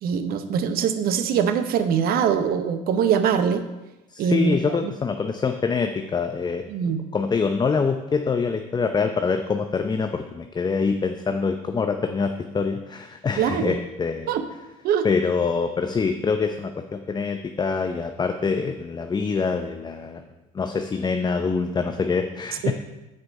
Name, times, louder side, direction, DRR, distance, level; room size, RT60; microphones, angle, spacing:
voice 1, 0.0-3.7 4.2-4.6 6.7-7.0 13.4-13.8 14.3-14.4 14.8-15.1 22.6-22.7, right 7 dB, 55° right, 9 dB, 0.9 m, -22 dB
voice 2, 4.1-6.6 7.1-14.3 15.0-20.2 20.5-22.7, left 5 dB, 25° left, 6 dB, 0.6 m, -25 dB
8.1 x 5.2 x 5.3 m, 1.0 s
hypercardioid pair, 70°, 18 cm